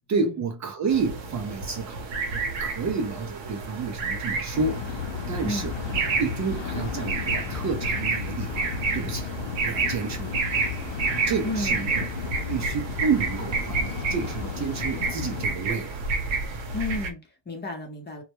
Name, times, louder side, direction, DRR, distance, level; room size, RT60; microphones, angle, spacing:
voice 1, 0.1-2.1 2.3-4.8 5.1-8.7 8.9-9.3 9.6-10.6 11.0-12.1 12.5-16.0, right 5 dB, 40° right, 0.5 m, -30 dB
sound 1, 0.9-17.1, right 4 dB, 75° right, 0.8 m, -30 dB
sound 2, 4.5-15.5, left 8 dB, 75° left, 0.6 m, -35 dB
voice 2, 11.4-12.0 16.7-18.2, left 2 dB, 25° left, 0.7 m, -32 dB
2.2 x 2.1 x 2.9 m
cardioid pair, 130°, 44 cm